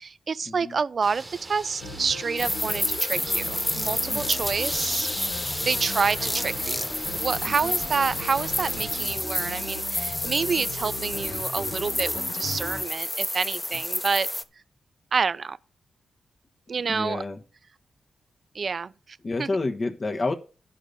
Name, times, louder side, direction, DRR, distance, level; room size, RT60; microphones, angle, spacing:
voice 1, 0.0-5.1 5.6-14.3 15.1-15.6 16.7-17.2 18.5-19.5, right 5 dB, 55° right, 0.5 m, -28 dB
sound 1, 1.0-9.1, right 2 dB, 25° right, 1.1 m, -41 dB
sound 2, 1.8-12.8, left 2 dB, 80° left, 1.1 m, -38 dB
sound 3, 2.4-14.4, left 1 dB, 15° left, 1.0 m, -30 dB
voice 2, 16.8-17.4 19.2-20.3, left 3 dB, 40° left, 1.2 m, -29 dB
11.0 x 5.3 x 6.8 m
cardioid pair, 70°, 0 cm